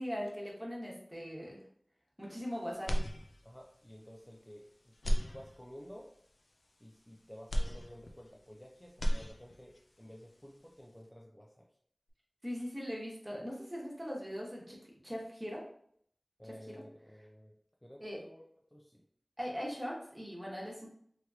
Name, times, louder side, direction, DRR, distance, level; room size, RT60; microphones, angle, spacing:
voice 1, 0.0-1.6 2.2-3.0 12.4-14.8 15.0-15.7 16.7-16.8 18.0-18.2 19.4-20.9, equal, 15° right, -4 dB, 1.1 m, -40 dB
sound 1, 2.8-3.7 4.2-4.3 4.9-6.0 7.5-8.6 8.9-9.8, equal, 85° left, 0.3 m, -34 dB
voice 2, 3.4-6.1 6.8-11.7 16.4-17.5 17.8-18.4 18.7-19.0, equal, 10° left, -1 dB, 0.4 m, -53 dB
3.2 x 2.9 x 2.4 m, 0.65 s
wide cardioid pair, 45°, 0 cm